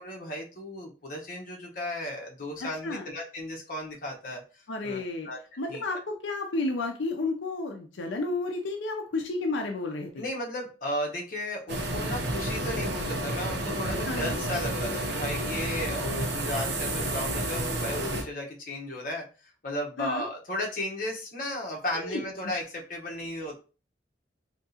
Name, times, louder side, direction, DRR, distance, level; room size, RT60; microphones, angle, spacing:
voice 1, 0.0-4.4 4.8-5.4 5.7-5.8 10.2-19.2 19.6-23.6, left 1 dB, 50° left, -1 dB, 1.0 m, -35 dB
voice 2, 2.6-3.1 4.7-5.3 5.6-10.2 14.1-14.4 20.0-20.3 21.9-22.2, left 2 dB, 85° left, 2 dB, 0.6 m, -32 dB
sound 1, 11.7-18.2, right 1 dB, 65° right, 0.7 m, -30 dB
3.5 x 2.9 x 2.8 m, 0.34 s
head